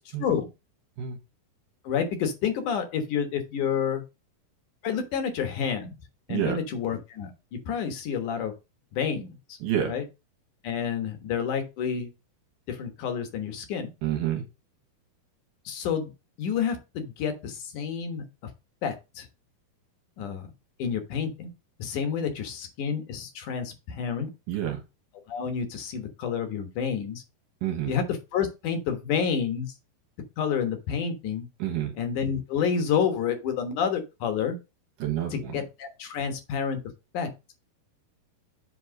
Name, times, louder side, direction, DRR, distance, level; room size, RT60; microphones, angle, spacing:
voice 1, 1.8-4.0 4.8-6.0 6.3-8.5 8.9-9.6 9.8-10.0 10.6-12.1 12.7-13.9 15.7-16.1 16.4-18.3 18.8-19.3 20.2-20.5 20.8-21.5 21.8-24.3 25.3-27.2 27.9-28.0 28.3-29.7 30.4-31.5 32.0-34.6 35.3-36.8 37.1-37.3, left 7 dB, 65° left, 6 dB, 2.4 m, -29 dB
voice 2, 9.6-9.9 14.0-14.5 24.5-24.8 27.6-27.9 31.6-31.9 35.0-35.6, right 11 dB, 65° right, 4 dB, 2.7 m, -28 dB
7.8 x 3.2 x 6.3 m, 0.26 s
omnidirectional pair, 4.6 m